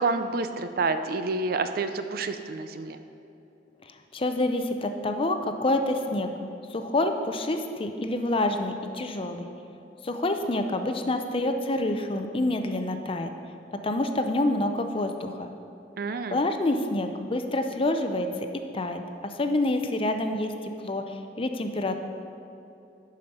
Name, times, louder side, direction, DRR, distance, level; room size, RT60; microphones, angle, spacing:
voice 1, 0.0-3.0 16.0-16.4, right 3 dB, 55° right, 9 dB, 0.5 m, -28 dB
voice 2, 3.8-6.3 6.7-9.5 10.0-13.3 13.8-15.5 16.3-18.5 18.7-20.5 20.8-22.0, left 2 dB, 30° left, 6 dB, 0.6 m, -27 dB
11.5 x 5.1 x 5.4 m, 2.8 s
head